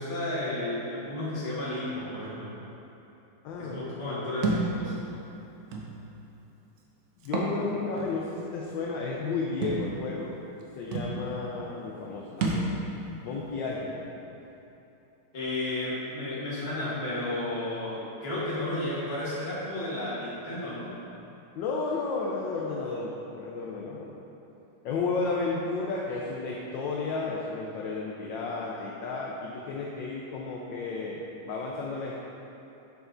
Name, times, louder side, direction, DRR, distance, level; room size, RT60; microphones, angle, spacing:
voice 1, 0.0-2.5 3.6-5.1 15.3-20.9, left 1 dB, 35° left, -8 dB, 1.2 m, -32 dB
voice 2, 3.4-3.9 7.2-10.3 10.8-12.7 13.2-14.0 21.5-24.1 24.8-32.2, left 3 dB, 75° left, -3 dB, 1.1 m, -32 dB
Thump thud, 4.4-4.7 5.7-5.9 7.2-7.6 8.0-8.1 9.6-9.8 10.6-10.7 10.9-11.1 12.4-12.7, right 3 dB, 85° right, 0.8 m, -28 dB
6.9 x 5.4 x 2.6 m, 3.0 s
omnidirectional pair, 2.4 m